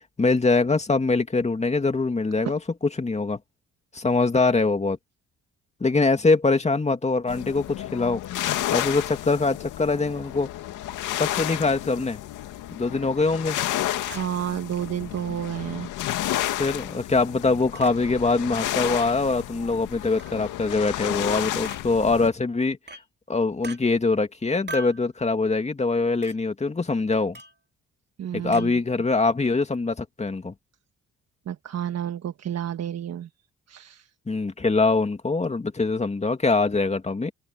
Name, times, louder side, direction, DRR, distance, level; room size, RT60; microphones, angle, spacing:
voice 1, 0.2-2.6 3.0-3.4 3.9-5.0 5.8-8.2 8.7-10.5 11.2-12.2 12.7-13.6 16.6-22.8 23.3-27.4 28.3-30.5 34.3-37.3, left 3 dB, 20° left, 2.5 m, -23 dB
sound 1, 7.3-22.3, left 13 dB, 85° left, 2.2 m, -31 dB
Chink clink, 14.1-14.3 15.2-15.3 16.4-16.6 17.8-17.9 18.8-19.0 20.2-20.4 21.6-21.8 22.9-23.1 23.6-23.8 24.7-25.0 26.2-26.4 27.3-27.6 28.5-28.7, right 3 dB, 35° right, 2.4 m, -40 dB
voice 2, 14.1-15.9 28.2-28.7 31.5-33.3 33.7-34.1, right 10 dB, 60° right, 1.5 m, -30 dB
open air
cardioid pair, 90°, 30 cm